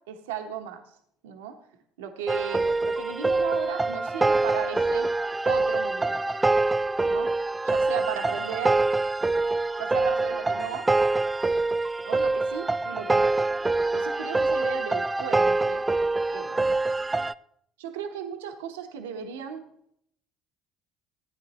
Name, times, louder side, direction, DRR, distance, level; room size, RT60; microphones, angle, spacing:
voice 1, 0.1-0.8 1.2-1.5 2.0-5.1 5.5-6.2 7.0-7.3 7.6-8.8 9.8-10.9 12.0-13.3 13.9-15.8 16.3-16.8 17.8-19.6, right 8 dB, 85° right, 4 dB, 1.0 m, -35 dB
sound 1, 2.3-17.3, right 2 dB, 15° right, 0.4 m, -25 dB
15.0 x 9.3 x 3.0 m, 0.68 s
hypercardioid pair, 65°, 0 cm